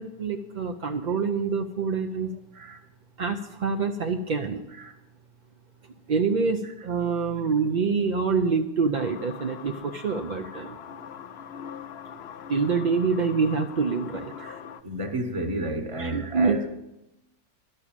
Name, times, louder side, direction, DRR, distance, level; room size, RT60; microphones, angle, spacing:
voice 1, 0.0-2.3 3.2-4.6 6.1-10.8 12.5-14.6 16.0-16.6, right 5 dB, 60° right, 0.5 m, -26 dB
sound 1, 8.9-14.8, left 8 dB, 60° left, 0.7 m, -42 dB
voice 2, 14.8-16.7, right 1 dB, 25° right, 0.9 m, -32 dB
12.0 x 6.7 x 8.6 m
omnidirectional pair, 1.5 m